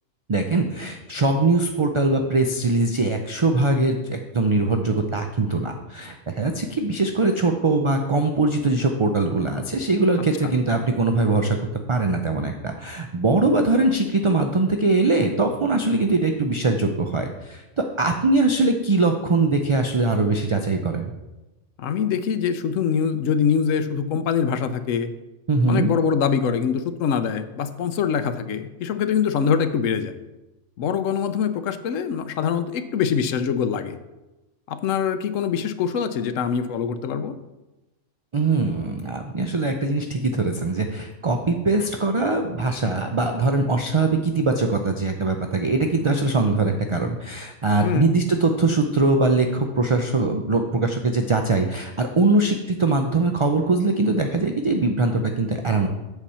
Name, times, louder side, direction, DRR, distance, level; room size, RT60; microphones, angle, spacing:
voice 1, 0.3-11.6 11.9-21.1 25.5-25.9 38.3-55.9, right 3 dB, 50° right, 4 dB, 0.3 m, -22 dB
voice 2, 21.8-25.1 25.7-30.1 30.8-34.0 34.7-37.3 47.8-48.1, left 7 dB, 85° left, 11 dB, 1.0 m, -24 dB
8.0 x 7.0 x 4.3 m, 1.0 s
omnidirectional pair, 1.3 m